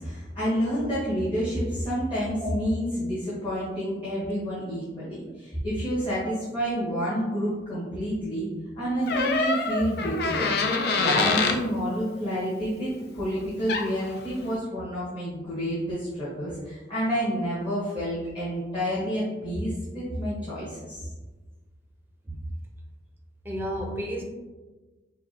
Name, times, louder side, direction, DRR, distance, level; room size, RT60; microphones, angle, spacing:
voice 1, 0.0-21.1, equal, 25° left, -10 dB, 1.2 m, -29 dB
Door, 9.1-11.6 13.4-13.5 13.7-14.1, left 4 dB, 55° left, 0.4 m, -25 dB
voice 2, 23.4-24.2, equal, 10° right, 0 dB, 0.6 m, -32 dB
5.5 x 2.3 x 2.9 m, 1.2 s
head